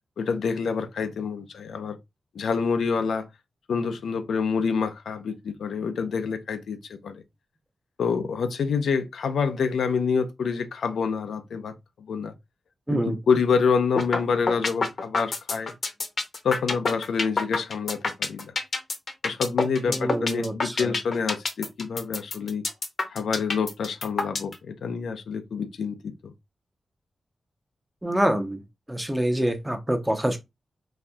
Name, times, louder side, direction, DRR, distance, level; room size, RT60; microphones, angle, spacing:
voice 1, 0.2-2.0 2.3-3.3 3.7-7.2 8.0-11.7 12.1-12.3 12.9-15.7 16.4-18.5 19.2-22.6 23.1-26.3, left 5 dB, 90° left, 0.4 m, -27 dB
sound 1, 14.0-14.2 14.5-24.5, left 3 dB, 55° left, 0.7 m, -26 dB
voice 2, 19.9-20.9 28.0-28.6 28.9-30.4, right 1 dB, 10° right, 0.6 m, -26 dB
4.1 x 2.6 x 2.2 m
wide cardioid pair, 105°, 0 cm